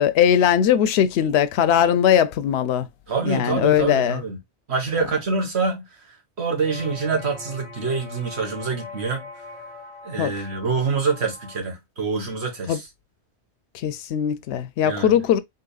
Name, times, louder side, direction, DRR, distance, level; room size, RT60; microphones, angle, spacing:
voice 1, 0.0-2.9 3.2-4.2 10.2-10.3 12.7-12.8 13.7-15.4, left 9 dB, 75° left, 0.8 m, -20 dB
voice 2, 3.1-4.4 4.7-5.8 6.4-9.3 10.0-12.8 14.8-15.2, right 4 dB, 70° right, 1.7 m, -26 dB
sound 1, 6.5-11.6, left 3 dB, 40° right, 1.8 m, -41 dB
4.0 x 3.8 x 2.3 m
omnidirectional pair, 1.1 m